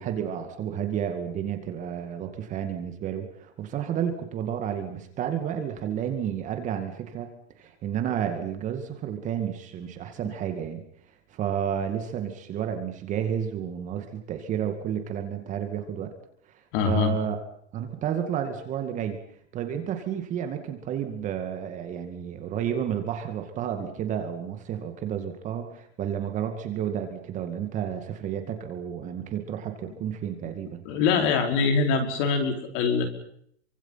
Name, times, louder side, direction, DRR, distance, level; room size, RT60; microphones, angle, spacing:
voice 1, 0.0-10.8 11.3-16.1 16.5-17.4 17.7-19.2 19.5-30.8, right 9 dB, 20° right, 6 dB, 2.3 m, -31 dB
voice 2, 16.7-17.1 30.8-33.0, left 5 dB, 35° left, 6 dB, 5.1 m, -23 dB
28.5 x 25.0 x 5.9 m, 0.67 s
supercardioid pair, 165°, 34 cm